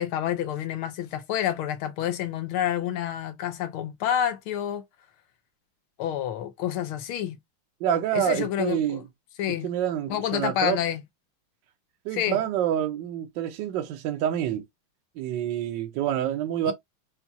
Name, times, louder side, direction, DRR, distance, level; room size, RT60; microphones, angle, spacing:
voice 1, 0.0-4.8 6.0-7.4 8.1-9.0 9.4-9.7 10.1-11.0 12.1-12.4 16.7-16.8, left 10 dB, 90° left, 1.6 m, -28 dB
voice 2, 7.8-9.0 9.6-10.8 12.0-14.6 15.2-16.7, right 10 dB, 70° right, 1.2 m, -27 dB
5.8 x 2.3 x 2.7 m
omnidirectional pair, 2.3 m